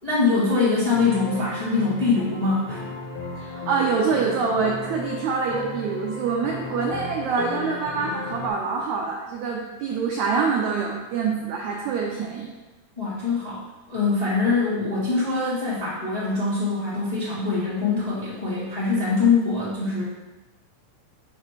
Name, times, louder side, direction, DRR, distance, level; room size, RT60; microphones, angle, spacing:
voice 1, 0.0-2.8 13.0-13.6 13.9-20.0, left 4 dB, 20° left, -10 dB, 1.0 m, -23 dB
sound 1, 0.9-8.5, left 3 dB, 85° left, 2.8 m, -35 dB
voice 2, 3.4-12.5, right 5 dB, 85° right, -1 dB, 1.6 m, -25 dB
6.9 x 3.1 x 5.9 m, 1.1 s
omnidirectional pair, 4.2 m